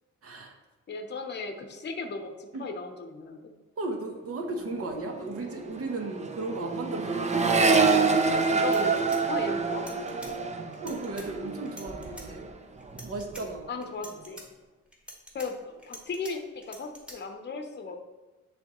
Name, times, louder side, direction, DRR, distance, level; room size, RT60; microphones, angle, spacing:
voice 1, 0.2-0.6 2.5-2.6 3.8-7.6 10.8-12.5 13.0-13.7, right 2 dB, 50° right, 2 dB, 1.0 m, -35 dB
voice 2, 0.9-3.4 8.3-10.4 13.7-14.4 15.3-18.0, left 3 dB, 35° left, 4 dB, 0.8 m, -36 dB
Accelerating revving vroom, 4.5-4.7 5.0-12.5 12.8-13.5, right 4 dB, 25° right, 0.5 m, -27 dB
sound 1, 8.7-10.3 10.7-11.3 11.7-12.3 12.8-13.4 13.8-14.5 14.9-16.3 16.6-17.2, equal, 5° right, 1.3 m, -46 dB
10.0 x 3.4 x 3.0 m, 1.2 s
cardioid pair, 115°, 30 cm